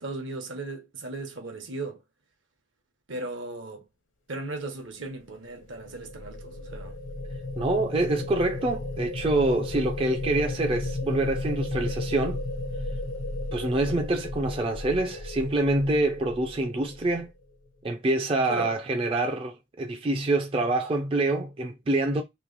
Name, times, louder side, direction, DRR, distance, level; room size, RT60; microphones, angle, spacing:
voice 1, 0.0-2.0 3.1-3.8 4.3-7.0 18.5-18.8, right 2 dB, 70° right, 1.0 m, -36 dB
sound 1, 5.3-17.5, left 2 dB, 65° left, 0.8 m, -34 dB
voice 2, 7.6-12.4 13.5-17.3 17.8-22.2, right 2 dB, 25° right, 0.4 m, -26 dB
3.1 x 2.8 x 3.8 m
head